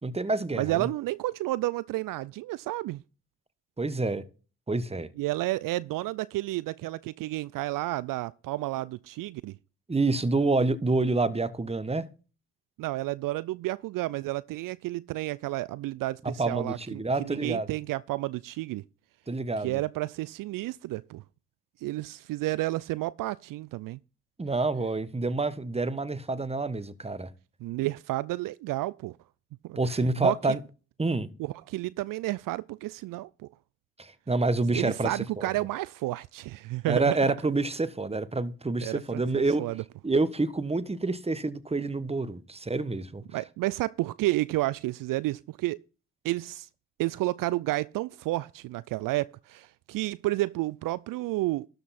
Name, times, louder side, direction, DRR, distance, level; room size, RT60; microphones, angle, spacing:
voice 1, 0.0-0.9 3.8-4.2 4.7-5.1 9.9-12.1 16.2-17.7 19.3-19.8 24.4-27.3 29.8-30.6 31.0-31.3 34.0-35.5 36.9-39.6 40.0-43.2, right 3 dB, 15° right, 1.2 m, -28 dB
voice 2, 0.6-3.0 5.2-9.5 12.8-18.8 19.6-21.2 21.8-24.0 27.6-29.2 29.6-30.4 31.4-33.5 34.7-37.2 38.8-39.8 43.3-45.8 46.2-46.7 47.0-51.7, right 18 dB, 65° right, 0.5 m, -31 dB
12.5 x 7.9 x 4.2 m
hypercardioid pair, 45°, 36 cm